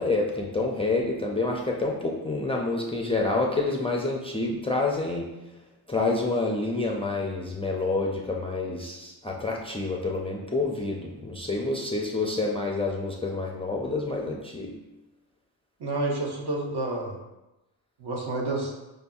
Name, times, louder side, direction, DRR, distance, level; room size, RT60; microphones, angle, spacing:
voice 1, 0.0-5.3 5.9-14.7, left 3 dB, 15° left, -2 dB, 0.3 m, -28 dB
voice 2, 15.8-17.2 18.0-18.7, right 2 dB, 60° right, -1 dB, 0.9 m, -29 dB
5.1 x 2.6 x 2.3 m, 1.0 s
cardioid pair, 80°, 45 cm